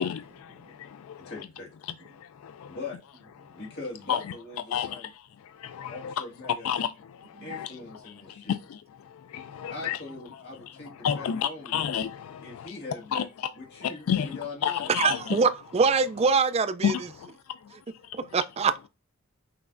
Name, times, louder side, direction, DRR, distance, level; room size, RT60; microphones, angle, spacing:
voice 1, 0.0-1.3 1.9-2.8 3.4-3.6 4.1-4.3 4.7-7.7 8.0-10.0 10.7-12.7 13.1-13.5 13.8-15.4 16.8-18.2, left 8 dB, 75° left, 0.3 m, -32 dB
voice 2, 1.2-1.7 2.7-3.0 3.5-5.1 5.9-6.7 7.4-8.6 9.7-11.8 12.4-13.3 13.6-15.1, left 3 dB, 50° left, 1.9 m, -41 dB
voice 3, 15.0-16.9 18.3-18.9, right 5 dB, 30° right, 0.3 m, -24 dB
5.8 x 3.1 x 2.5 m
head